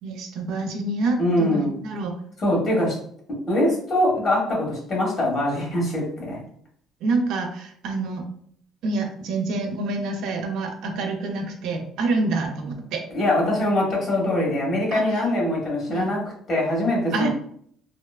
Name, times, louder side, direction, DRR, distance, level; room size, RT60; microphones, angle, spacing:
voice 1, 0.0-2.1 7.0-8.2 8.8-13.1 14.9-15.2 15.9-16.1 17.1-17.3, right 3 dB, 75° right, 3 dB, 0.5 m, -27 dB
voice 2, 1.2-1.7 2.4-3.0 3.3-6.4 13.1-16.2 16.5-17.3, left 1 dB, 45° left, -3 dB, 1.4 m, -23 dB
2.8 x 2.2 x 2.3 m, 0.62 s
supercardioid pair, 85°, 0 cm